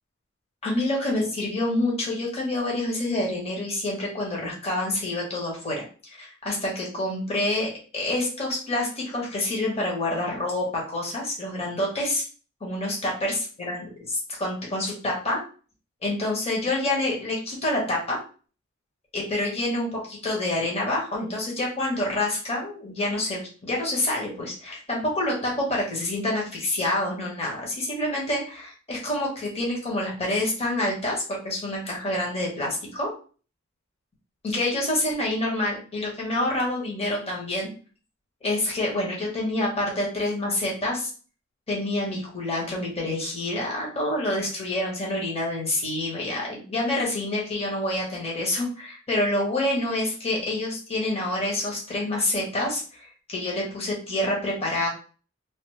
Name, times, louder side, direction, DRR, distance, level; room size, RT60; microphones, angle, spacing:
voice 1, 0.6-5.8 6.1-12.2 12.6-13.3 13.6-13.9 14.3-15.4 16.0-18.2 19.1-33.1 34.4-37.7 38.4-41.1 41.7-54.9, left 1 dB, 30° left, -3 dB, 1.1 m, -27 dB
3.2 x 2.1 x 3.2 m, 0.38 s
head